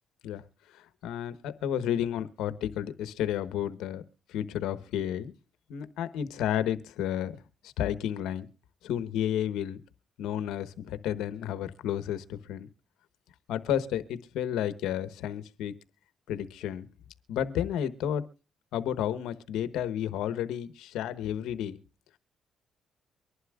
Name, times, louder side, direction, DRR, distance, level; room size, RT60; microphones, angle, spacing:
voice 1, 0.7-4.0 4.3-5.3 5.7-7.3 7.6-8.5 8.8-9.8 10.2-12.7 13.5-15.7 16.3-16.9 17.3-18.2 18.7-21.8, left 10 dB, 90° left, 14 dB, 1.1 m, -31 dB
24.0 x 11.5 x 2.4 m, 0.32 s
cardioid pair, 90°, 0 cm